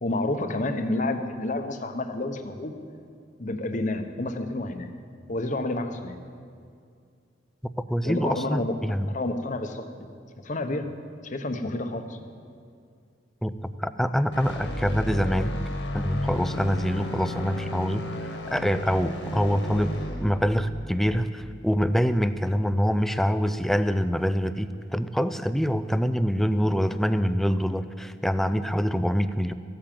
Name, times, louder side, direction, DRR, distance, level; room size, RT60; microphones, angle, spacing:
voice 1, 0.0-2.7 3.4-4.9 5.3-6.2 8.0-8.7 9.1-10.1 10.4-10.9 11.2-12.2, left 2 dB, 45° left, 7 dB, 0.9 m, -29 dB
voice 2, 7.9-9.1 13.4-13.5 13.8-15.5 15.9-18.0 18.5-19.9 20.2-29.5, equal, ahead, 11 dB, 0.4 m, -25 dB
sound 1, 14.3-22.5, left 1 dB, 75° left, 1.9 m, -33 dB
15.0 x 8.8 x 7.6 m, 2.3 s
head